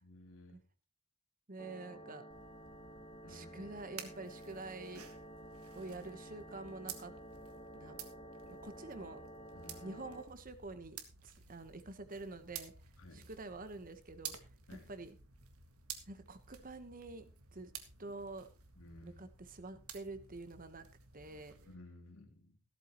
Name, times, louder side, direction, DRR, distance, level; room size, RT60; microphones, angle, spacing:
voice 1, 0.0-0.6 1.9-2.0 3.2-3.8 9.5-10.1 13.0-13.3 14.7-14.9 18.8-19.3 21.6-22.5, left 1 dB, 75° left, 4 dB, 2.9 m, -56 dB
voice 2, 1.5-2.2 3.3-5.1 5.7-7.1 7.7-8.0 8.5-9.2 9.8-12.7 13.1-14.3 14.9-15.2 16.1-17.7 18.0-18.5 19.0-20.9 21.1-21.5, right 2 dB, 40° right, 10 dB, 1.2 m, -47 dB
sound 1, 1.6-10.2, right 1 dB, 30° left, 1.3 m, -52 dB
sound 2, 2.3-21.7, right 8 dB, 90° right, 1.9 m, -53 dB
15.0 x 13.0 x 3.0 m, 0.33 s
head